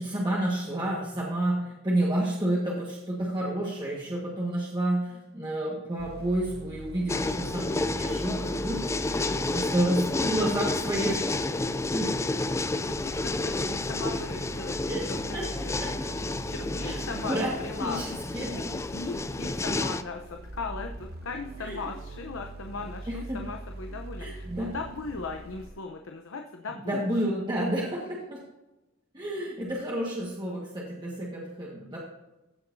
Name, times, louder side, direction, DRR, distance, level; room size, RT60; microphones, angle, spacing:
voice 1, 0.0-11.6 11.9-12.1 14.9-15.1 15.3-15.4 15.8-16.1 16.8-17.0 17.3-17.5 17.8-18.5 21.6-21.9 23.1-23.4 24.2-24.7 26.9-28.4 29.1-32.0, right 1 dB, 20° right, -5 dB, 1.6 m, -30 dB
sound 1, 6.0-25.7, right 2 dB, 50° right, 0.8 m, -43 dB
sound 2, 7.1-20.0, left 2 dB, 15° left, 0.4 m, -30 dB
voice 2, 9.9-10.7 12.7-15.8 16.1-18.0 18.4-27.2, left 4 dB, 85° left, 3 dB, 0.8 m, -39 dB
15.5 x 6.8 x 2.7 m, 1.0 s
head